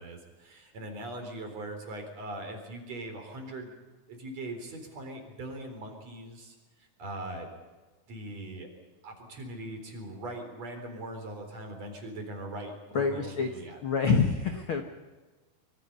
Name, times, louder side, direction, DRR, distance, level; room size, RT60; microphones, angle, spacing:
voice 1, 0.0-3.8 4.1-7.5 8.1-8.7 9.0-13.8, right 1 dB, 45° right, 4 dB, 5.0 m, -41 dB
voice 2, 12.9-14.8, left 5 dB, 55° left, 5 dB, 1.6 m, -27 dB
25.5 x 24.0 x 5.6 m, 1.3 s
omnidirectional pair, 4.2 m